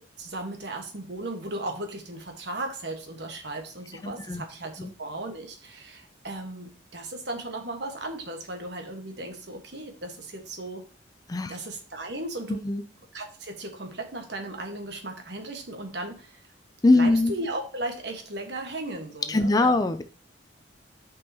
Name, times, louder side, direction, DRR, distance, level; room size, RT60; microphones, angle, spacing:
voice 1, 0.2-10.8 11.5-12.6 13.1-16.4 16.9-19.8, right 2 dB, 60° right, 3 dB, 1.4 m, -36 dB
voice 2, 4.0-4.4 4.8-4.9 11.3-11.5 12.6-12.8 16.8-17.3 19.3-20.0, left 2 dB, 20° left, 10 dB, 0.4 m, -22 dB
8.4 x 5.4 x 2.9 m, 0.39 s
head